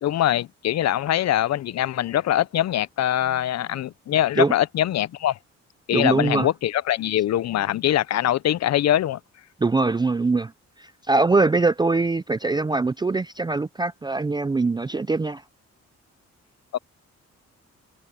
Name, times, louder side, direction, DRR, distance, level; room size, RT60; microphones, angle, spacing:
voice 1, 0.0-5.4 5.9-9.2 16.7-16.8, left 12 dB, 65° left, 0.6 m, -23 dB
voice 2, 5.9-6.5 9.6-10.5 10.8-15.4, right 3 dB, 15° right, 0.5 m, -22 dB
cardioid pair, 135°, 29 cm